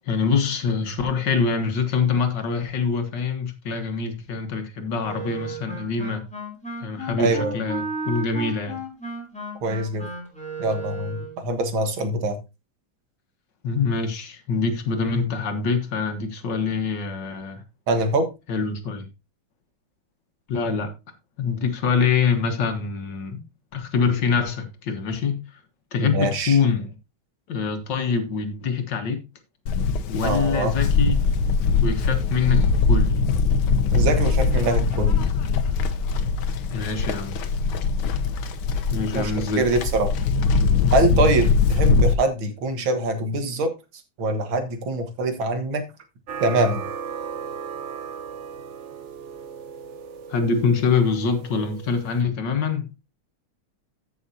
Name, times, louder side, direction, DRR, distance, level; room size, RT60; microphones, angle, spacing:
voice 1, 0.0-6.2 6.8-8.8 13.6-17.6 18.5-19.1 20.5-20.9 21.4-23.4 23.7-25.4 25.9-27.0 27.5-29.2 30.1-31.2 31.8-33.3 36.7-37.4 38.9-39.6 50.3-52.9, left 5 dB, 65° left, 2.1 m, -24 dB
Wind instrument woodwind instrument, 5.0-11.4, right 2 dB, 5° left, 3.2 m, -34 dB
voice 2, 7.2-7.6 9.6-10.1 10.6-12.4 17.9-18.3 26.0-26.6 30.2-30.8 33.9-35.3 39.1-40.1 40.9-43.7 44.2-45.8 46.4-46.9, right 2 dB, 85° right, 2.3 m, -24 dB
Livestock farm animals working animals, 29.7-42.1, left 4 dB, 85° left, 1.7 m, -21 dB
sound 1, 46.3-52.2, right 6 dB, 55° right, 0.9 m, -36 dB
14.5 x 6.3 x 2.7 m
omnidirectional pair, 2.1 m